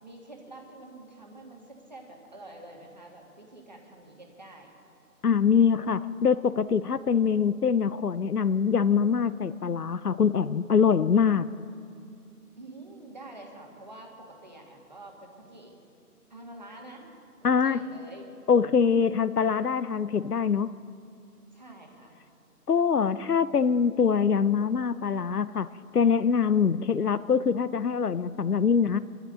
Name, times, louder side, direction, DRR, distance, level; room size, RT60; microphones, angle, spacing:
voice 1, 0.0-4.7 12.6-15.8 16.3-17.1 17.4-18.2 21.5-22.2, right 2 dB, 25° right, 0 dB, 1.9 m, -47 dB
voice 2, 5.2-11.5 17.4-17.8 18.5-20.8 22.7-29.0, left 6 dB, 70° left, 16 dB, 0.7 m, -24 dB
26.0 x 13.5 x 3.8 m, 2.5 s
figure-of-eight pair, 180°, 47 cm